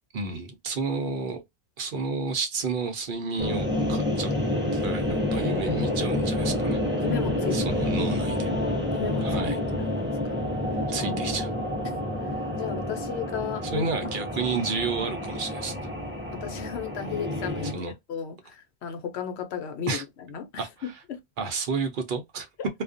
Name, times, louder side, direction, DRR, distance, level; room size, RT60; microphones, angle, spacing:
voice 1, 0.1-1.4 1.8-4.3 4.7-6.8 7.5-8.5 9.2-9.6 10.9-11.5 13.6-15.7 17.7-17.9 19.9-20.0 20.6-21.0 21.4-22.5, right 4 dB, 55° right, 0.7 m, -31 dB
sound 1, 3.4-17.7, left 1 dB, 15° right, 0.6 m, -28 dB
voice 2, 7.0-7.9 8.9-9.5 9.8-10.0 10.2-10.3 11.0-11.4 11.8-11.9 12.5-13.9 16.3-21.2 22.6-22.7, left 7 dB, 80° left, 0.9 m, -35 dB
2.3 x 2.1 x 2.4 m
omnidirectional pair, 1.1 m